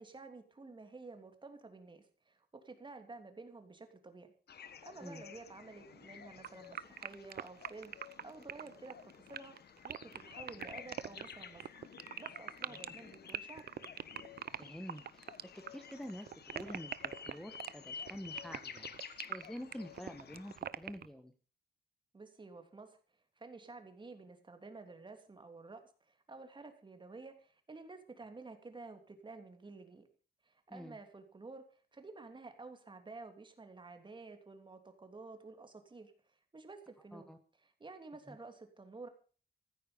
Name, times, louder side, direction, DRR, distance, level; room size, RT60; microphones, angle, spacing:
voice 1, 0.0-4.3 4.8-9.5 9.8-11.8 12.2-13.6 22.1-23.0 23.4-30.1 30.4-31.6 31.9-37.3 37.6-39.1, right 3 dB, 30° right, 6 dB, 3.0 m, -51 dB
sound 1, 4.5-20.6, left 7 dB, 70° left, 1.5 m, -52 dB
sound 2, 6.4-21.1, right 9 dB, 65° right, 0.8 m, -43 dB
voice 2, 14.5-18.9 19.3-21.3 30.7-31.0 37.1-37.4 38.3-38.4, equal, 5° left, 5 dB, 1.3 m, -48 dB
15.0 x 13.5 x 5.3 m, 0.40 s
wide cardioid pair, 115°, 17 cm